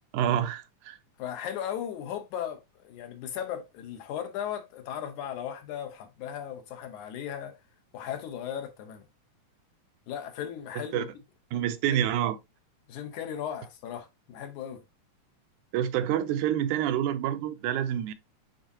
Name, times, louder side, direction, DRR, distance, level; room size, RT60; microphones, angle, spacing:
voice 1, 0.1-1.0 10.8-11.0 11.5-12.4 15.7-18.1, right 10 dB, 85° right, 2.1 m, -27 dB
voice 2, 1.2-7.5 7.9-9.1 10.1-11.1 11.6-12.0 12.9-14.8, left 9 dB, 75° left, 2.5 m, -37 dB
9.4 x 4.1 x 2.8 m
omnidirectional pair, 3.5 m